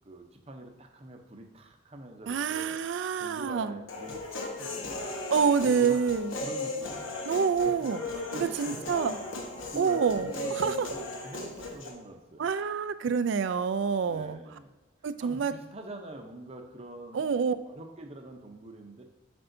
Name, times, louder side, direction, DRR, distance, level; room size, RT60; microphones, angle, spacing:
voice 1, 0.0-2.8 3.2-5.1 5.6-6.0 6.4-7.1 7.6-7.9 8.3-9.1 9.7-12.5 14.0-14.7 15.2-19.0, right 1 dB, 30° right, 3 dB, 0.7 m, -45 dB
voice 2, 2.3-3.8 5.3-6.3 7.3-8.0 8.4-9.2 9.8-10.9 12.4-14.4 15.0-15.5 17.1-17.6, right 6 dB, 65° right, 13 dB, 0.3 m, -27 dB
Human voice, 3.9-11.9, left 2 dB, 70° left, 1.1 m, -37 dB
7.8 x 5.4 x 2.6 m, 1.2 s
head